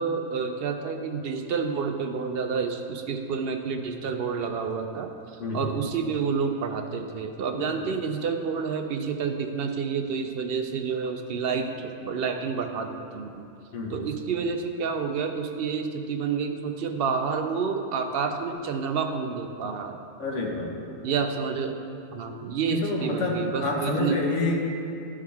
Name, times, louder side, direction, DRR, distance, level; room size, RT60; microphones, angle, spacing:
voice 1, 0.0-5.1 5.5-13.4 13.9-20.0 21.0-21.7 22.1-24.2, right 5 dB, 65° right, 5 dB, 0.6 m, -29 dB
voice 2, 20.2-20.9 22.7-24.7, left 3 dB, 65° left, -1 dB, 1.4 m, -28 dB
12.5 x 4.9 x 3.4 m, 2.5 s
omnidirectional pair, 1.4 m